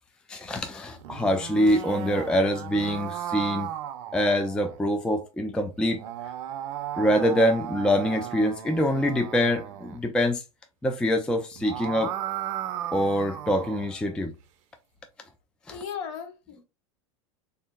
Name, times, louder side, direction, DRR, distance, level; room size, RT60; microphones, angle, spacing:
voice 1, 0.3-3.7 4.1-6.0 7.0-10.4 10.8-12.1 12.9-14.3 15.7-15.8, equal, 5° left, 0.3 m, -25 dB
sound 1, 0.9-4.8 5.8-10.0 11.4-13.9, right 11 dB, 65° right, 0.5 m, -35 dB
voice 2, 15.7-16.6, left 7 dB, 65° left, 1.0 m, -36 dB
3.3 x 2.6 x 2.2 m
hypercardioid pair, 90°, 17 cm